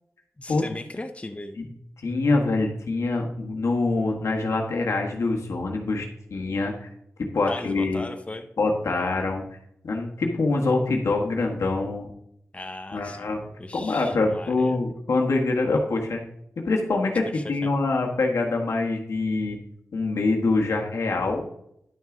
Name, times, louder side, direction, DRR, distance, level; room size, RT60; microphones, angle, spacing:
voice 1, 0.4-1.6 7.5-8.5 12.5-13.3 13.6-14.8 17.3-17.7, left 2 dB, 25° left, 7 dB, 0.8 m, -37 dB
voice 2, 2.0-6.0 6.3-6.9 7.3-8.1 8.6-9.4 9.8-12.1 12.9-13.4 13.7-16.2 16.6-17.2 17.5-19.6 19.9-21.4, left 3 dB, 90° left, 1 dB, 1.5 m, -24 dB
10.5 x 5.9 x 3.9 m, 0.76 s
cardioid pair, 55°, 5 cm